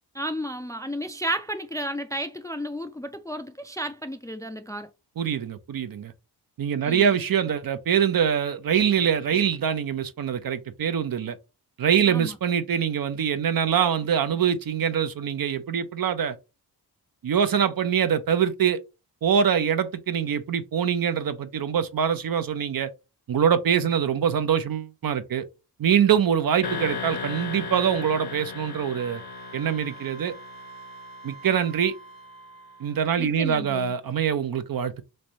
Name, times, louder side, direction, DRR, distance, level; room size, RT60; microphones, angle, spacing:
voice 1, 0.1-4.9 6.8-7.1 12.0-12.4 33.2-34.0, equal, 10° left, 0.3 m, -32 dB
voice 2, 5.2-6.1 6.6-11.4 11.8-16.4 17.2-18.8 19.2-22.9 23.3-25.4 25.8-29.2 29.5-30.3 31.2-31.9 32.8-35.0, right 8 dB, 60° right, 0.6 m, -24 dB
sound 1, 26.6-31.5, left 5 dB, 65° left, 0.9 m, -36 dB
Wind instrument woodwind instrument, 29.0-33.1, right 4 dB, 15° right, 0.8 m, -46 dB
3.3 x 2.6 x 4.1 m
cardioid pair, 80°, 41 cm